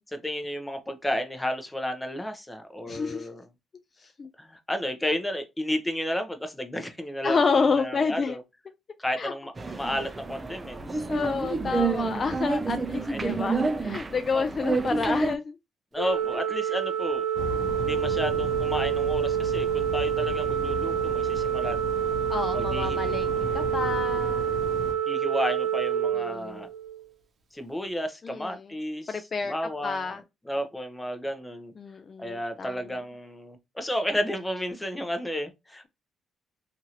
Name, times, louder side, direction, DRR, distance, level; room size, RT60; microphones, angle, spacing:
voice 1, 0.1-3.5 4.4-8.4 9.0-11.0 13.1-13.4 14.3-14.4 15.9-17.2 17.8-21.8 22.5-23.2 25.1-26.7 27.5-30.1 30.5-31.7 32.2-35.9, equal, 10° left, 0.7 m, -32 dB
voice 2, 2.9-3.3 4.0-4.3 7.2-8.4 9.2-9.3 11.1-15.6 22.3-24.5 26.2-26.6 28.2-28.7 29.1-29.5 29.8-30.2 31.8-32.8, left 5 dB, 40° left, 0.3 m, -29 dB
sound 1, 9.6-15.4, right 3 dB, 25° right, 0.4 m, -29 dB
Organ, 16.0-27.0, right 9 dB, 50° right, 0.8 m, -28 dB
sound 2, 17.3-24.9, left 4 dB, 90° left, 0.7 m, -36 dB
2.9 x 2.5 x 2.8 m
cardioid pair, 90°, 0 cm